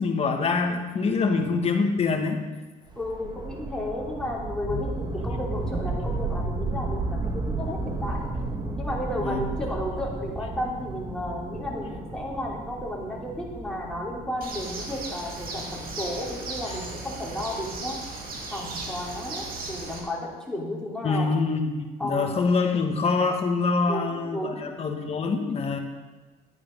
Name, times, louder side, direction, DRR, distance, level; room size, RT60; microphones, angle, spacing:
voice 1, 0.0-2.4 4.7-4.8 9.2-9.4 21.0-25.8, left 4 dB, 35° left, 3 dB, 1.8 m, -25 dB
voice 2, 2.9-8.2 8.8-18.0 18.5-21.3 22.0-22.4 23.9-24.6, left 1 dB, 5° left, -3 dB, 3.3 m, -33 dB
sound 1, 2.9-16.0, right 2 dB, 25° right, 1.6 m, -33 dB
Bird, 14.4-20.0, right 3 dB, 60° right, 2.5 m, -36 dB
12.0 x 9.5 x 5.3 m, 1.3 s
cardioid pair, 110°, 17 cm